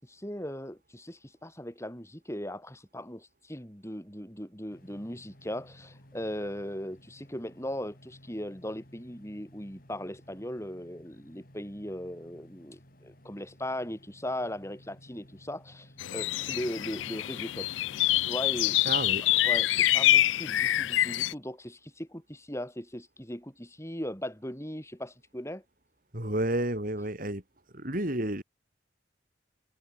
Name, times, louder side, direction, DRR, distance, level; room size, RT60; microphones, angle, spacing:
voice 1, 0.0-17.7 18.2-18.9 19.4-25.6, left 1 dB, 15° left, 7.9 m, -38 dB
sound 1, 4.7-21.3, equal, 50° left, 6.6 m, -56 dB
sound 2, 16.0-21.3, left 14 dB, 75° left, 0.3 m, -26 dB
voice 2, 18.9-19.3 26.1-27.4 27.7-28.4, right 1 dB, 45° right, 3.8 m, -30 dB
head